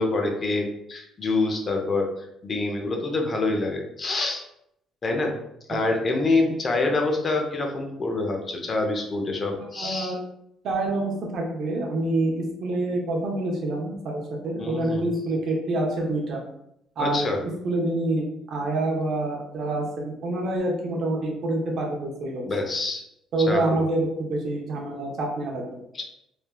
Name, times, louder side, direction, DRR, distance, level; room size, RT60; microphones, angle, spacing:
voice 1, 0.0-2.1 2.4-4.4 5.0-5.3 5.7-10.1 14.6-15.1 17.0-17.4 22.5-23.0 23.5-23.6 25.9-26.0, left 3 dB, 40° left, 3 dB, 0.6 m, -26 dB
voice 2, 9.6-10.2 10.6-16.4 17.0-22.4 23.3-25.8, right 2 dB, 60° right, 0 dB, 0.6 m, -27 dB
3.2 x 2.2 x 2.2 m, 0.78 s
supercardioid pair, 80°, 0 cm